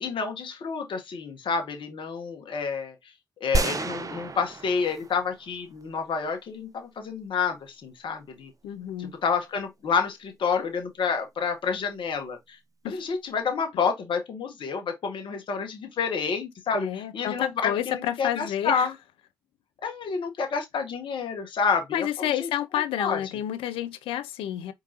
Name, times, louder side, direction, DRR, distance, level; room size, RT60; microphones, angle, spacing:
voice 1, 0.0-2.9 3.4-8.5 9.2-12.6 12.9-18.9 19.8-22.5 23.0-23.2, left 5 dB, 65° left, 1.3 m, -29 dB
sound 1, 3.5-5.5 5.8-5.9, right 3 dB, 40° right, 0.7 m, -30 dB
voice 2, 8.6-9.1 12.8-13.1 16.7-18.9 21.9-24.7, left 11 dB, 80° left, 0.5 m, -30 dB
4.5 x 3.8 x 2.8 m
hypercardioid pair, 40°, 9 cm